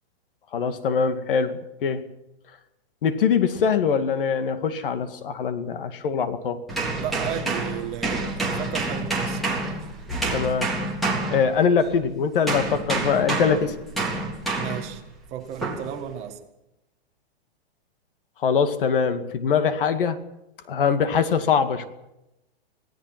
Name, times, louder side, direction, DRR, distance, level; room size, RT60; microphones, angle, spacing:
voice 1, 0.5-2.0 3.0-6.6 10.3-10.8 11.3-13.8 18.4-20.2 20.7-21.9, left 6 dB, 55° left, 2.3 m, -23 dB
sound 1, 6.7-12.0 12.5-15.0 15.6-15.9, right 2 dB, ahead, 3.6 m, -28 dB
voice 2, 7.0-9.5 13.6-13.8 14.6-15.0 15.3-16.5, right 10 dB, 20° right, 1.8 m, -34 dB
26.0 x 18.0 x 6.1 m
hypercardioid pair, 170°, 32 cm